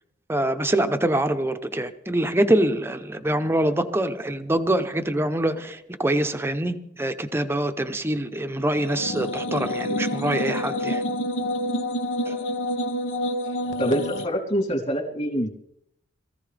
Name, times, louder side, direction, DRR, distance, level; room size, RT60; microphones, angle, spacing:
voice 1, 0.3-11.0 12.3-12.4, right 1 dB, 10° right, 0.8 m, -24 dB
sound 1, 8.8-14.3, left 1 dB, 65° left, 1.0 m, -28 dB
voice 2, 13.8-15.5, equal, 35° left, 3.2 m, -25 dB
22.0 x 15.0 x 3.4 m
head